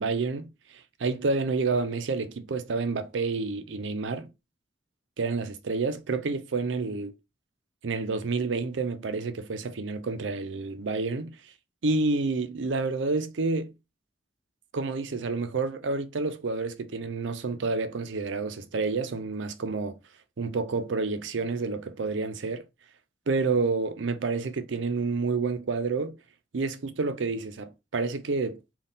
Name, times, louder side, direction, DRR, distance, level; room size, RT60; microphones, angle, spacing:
voice 1, 0.0-4.3 5.2-7.1 7.8-11.4 11.8-13.7 14.7-20.0 20.4-22.6 23.3-26.2 26.5-28.6, right 3 dB, 85° right, 0.5 m, -29 dB
3.6 x 2.3 x 3.9 m
head